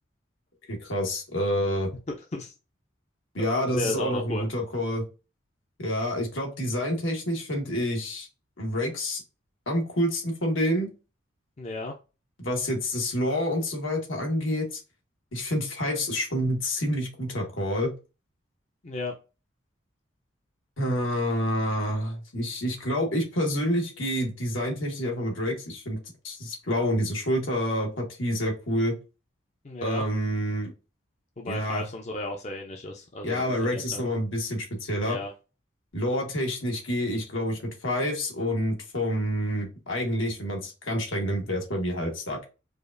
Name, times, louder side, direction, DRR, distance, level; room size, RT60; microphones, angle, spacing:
voice 1, 0.7-1.9 3.3-5.0 5.8-8.3 8.6-9.2 9.7-10.9 12.4-14.8 15.3-17.9 20.8-26.0 26.2-29.0 29.8-30.7 31.5-31.8 33.2-35.2 35.9-42.4, equal, 85° left, 0 dB, 1.6 m, -28 dB
voice 2, 3.7-4.4 11.6-11.9 18.8-19.1 29.6-30.0 31.4-34.0 35.0-35.3, left 2 dB, 35° left, 2 dB, 0.5 m, -34 dB
4.9 x 2.4 x 2.5 m, 0.30 s
head